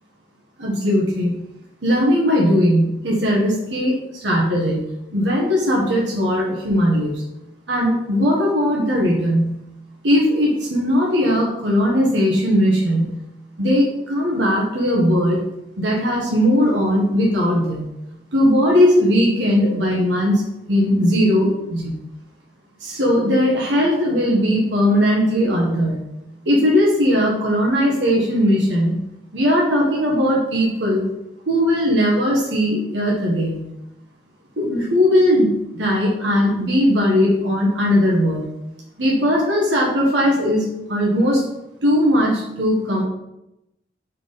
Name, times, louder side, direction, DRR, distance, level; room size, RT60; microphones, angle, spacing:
voice 1, 0.6-1.4 1.8-7.2 7.7-9.6 10.0-13.2 13.6-15.4 15.8-17.9 18.3-21.9 22.8-26.0 26.4-29.0 29.3-31.1 31.5-33.6 34.6-38.4 39.0-41.4 41.8-43.0, equal, 90° right, -3 dB, 1.3 m, -18 dB
4.6 x 4.0 x 5.1 m, 0.89 s
head